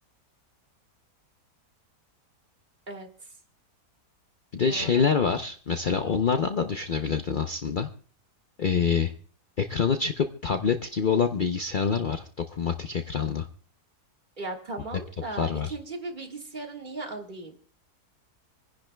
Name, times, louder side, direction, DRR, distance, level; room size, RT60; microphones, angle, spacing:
voice 1, 2.9-3.4 4.7-5.0 14.4-17.6, right 2 dB, 30° right, 3 dB, 1.7 m, -37 dB
voice 2, 4.5-7.9 8.6-9.1 9.6-13.5 15.4-15.7, left 6 dB, 85° left, 6 dB, 0.4 m, -26 dB
27.5 x 10.5 x 2.2 m, 0.42 s
omnidirectional pair, 1.7 m